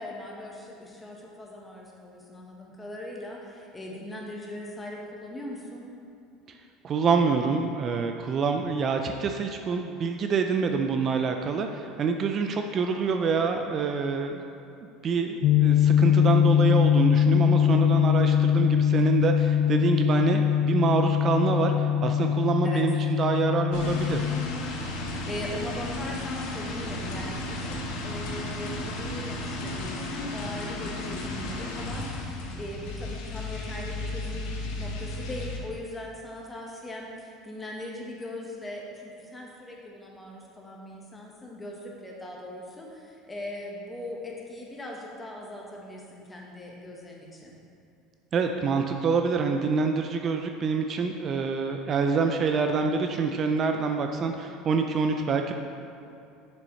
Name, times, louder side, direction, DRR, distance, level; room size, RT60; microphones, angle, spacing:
voice 1, 0.0-5.9 22.6-22.8 25.3-27.8 28.0-47.6, left 1 dB, 15° left, -2 dB, 1.2 m, -40 dB
voice 2, 6.8-14.4 15.0-21.7 22.0-24.3 48.3-55.5, right 5 dB, 40° right, 5 dB, 0.4 m, -26 dB
sound 1, 15.4-24.5, left 9 dB, 55° left, 0.3 m, -22 dB
sound 2, 23.7-35.6, left 2 dB, 75° left, 1.0 m, -34 dB
6.8 x 6.3 x 3.2 m, 2.6 s
supercardioid pair, 110°, 0 cm